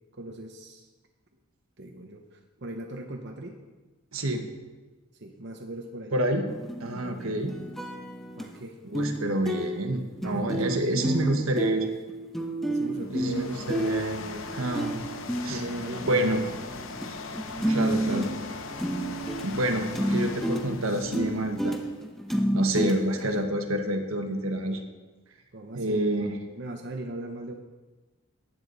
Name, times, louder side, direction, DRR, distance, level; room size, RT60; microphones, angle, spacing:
voice 1, 0.2-0.9 1.8-3.6 5.1-6.2 7.0-7.2 8.4-8.8 10.3-11.5 12.7-13.9 15.5-16.4 25.5-27.5, right 1 dB, 55° right, 2 dB, 0.9 m, -38 dB
voice 2, 4.1-4.4 6.1-6.4 6.8-7.6 8.9-11.8 13.1-15.0 15.4-15.6 16.0-16.4 17.6-18.3 19.4-21.8 22.5-24.8 25.7-26.4, right 1 dB, 80° right, 5 dB, 1.4 m, -28 dB
sound 1, 6.5-8.5 8.9-9.2 9.5-17.1 17.3-23.4, right 1 dB, ahead, 0.9 m, -31 dB
sound 2, 12.9-22.1, left 3 dB, 70° left, 0.9 m, -40 dB
15.0 x 9.6 x 4.1 m, 1.3 s
head